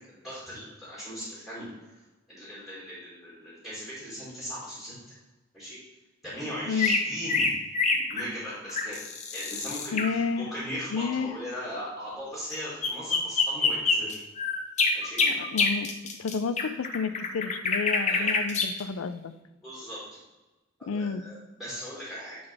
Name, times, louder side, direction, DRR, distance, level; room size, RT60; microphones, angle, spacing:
voice 1, 0.1-1.7 2.3-5.2 5.5-5.8 6.2-7.5 7.9-9.0 9.3-14.2 14.9-15.2 17.9-18.4 19.6-20.2 20.8-22.4, equal, ahead, -8 dB, 2.1 m, -38 dB
voice 2, 6.7-7.0 9.9-10.5 10.9-11.3 15.2-15.9 16.2-19.3 20.9-21.2, left 5 dB, 85° left, 12 dB, 0.4 m, -30 dB
sound 1, 6.8-10.1 12.5-12.6 12.8-18.8, left 4 dB, 35° left, 0.6 m, -26 dB
8.8 x 4.0 x 3.4 m, 1.1 s
head